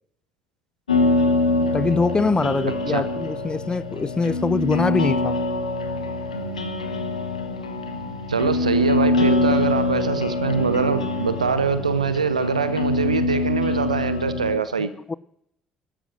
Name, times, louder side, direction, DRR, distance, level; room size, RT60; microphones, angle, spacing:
sound 1, 0.9-14.6, left 2 dB, 80° left, 1.4 m, -24 dB
voice 1, 1.6-5.4 14.8-15.1, left 4 dB, 25° left, 0.5 m, -23 dB
voice 2, 8.3-14.9, right 5 dB, 85° right, 0.7 m, -23 dB
13.0 x 11.5 x 7.4 m
figure-of-eight pair, 50°, 4 cm